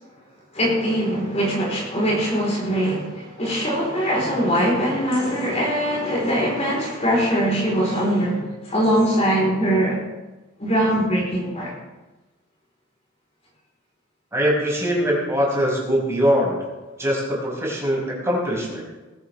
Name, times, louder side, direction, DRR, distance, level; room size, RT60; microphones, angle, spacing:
voice 1, 0.5-10.0 10.6-11.7, equal, 35° left, -3 dB, 4.5 m, -22 dB
voice 2, 14.3-16.6 17.0-18.9, equal, 15° right, -4 dB, 5.8 m, -22 dB
20.0 x 12.5 x 3.6 m, 1.1 s
head